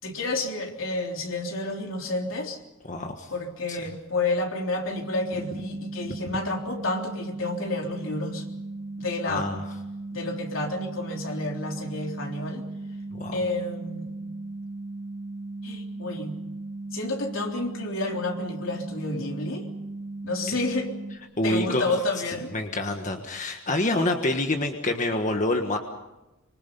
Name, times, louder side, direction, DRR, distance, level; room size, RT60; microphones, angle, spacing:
voice 1, 0.0-2.6 3.3-8.4 9.0-9.6 10.1-12.7 13.3-14.2 15.6-16.4 16.9-19.7 20.2-20.9 21.4-22.5, left 2 dB, 75° left, 2 dB, 3.7 m, -30 dB
voice 2, 2.9-3.3 3.7-3.8 9.3-9.6 13.1-13.4 21.4-21.9 22.5-25.8, left 2 dB, 40° left, 4 dB, 1.5 m, -27 dB
sound 1, 4.9-21.2, right 2 dB, 65° right, 3.5 m, -37 dB
25.5 x 25.5 x 5.4 m, 1.0 s
head